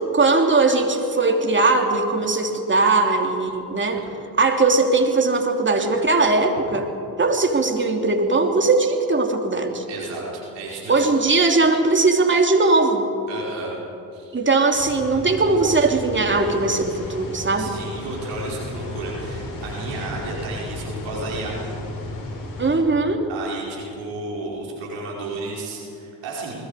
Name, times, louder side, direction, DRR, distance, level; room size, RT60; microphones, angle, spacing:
voice 1, 0.0-4.0 4.4-6.9 7.2-9.8 10.9-13.1 14.3-17.7 22.6-23.3, right 3 dB, 25° right, 3 dB, 3.2 m, -19 dB
voice 2, 9.9-11.0 13.3-13.7 14.1-14.5 17.6-21.6 23.3-26.5, right 2 dB, 75° right, -4 dB, 5.1 m, -33 dB
sound 1, 14.7-22.8, left 2 dB, 45° left, 7.2 m, -34 dB
29.5 x 20.5 x 5.0 m, 2.8 s
hypercardioid pair, 55°, 44 cm